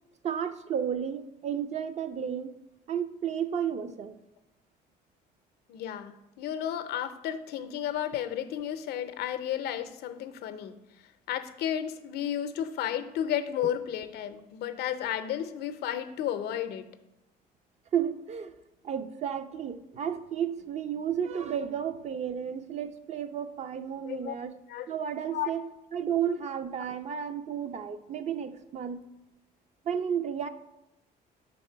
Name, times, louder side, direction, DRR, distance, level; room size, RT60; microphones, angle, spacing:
voice 1, 0.2-2.6 2.9-4.2 17.9-18.6 18.8-24.6 24.9-29.1 29.8-30.5, right 8 dB, 40° right, 10 dB, 0.4 m, -32 dB
voice 2, 5.7-10.8 11.3-16.9 24.0-24.3 24.7-24.9 25.3-25.5, left 10 dB, 75° left, 10 dB, 0.6 m, -33 dB
5.1 x 4.1 x 5.5 m, 0.92 s
cardioid pair, 110°, 17 cm